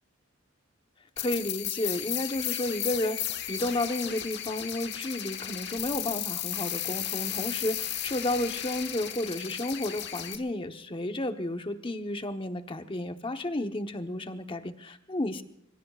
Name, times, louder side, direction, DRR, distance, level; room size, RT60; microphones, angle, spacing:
sound 1, 1.2-10.4, left 11 dB, 55° left, 1.3 m, -34 dB
voice 1, 1.2-15.4, left 1 dB, 25° left, 7 dB, 1.0 m, -32 dB
25.0 x 23.0 x 2.4 m, 0.74 s
head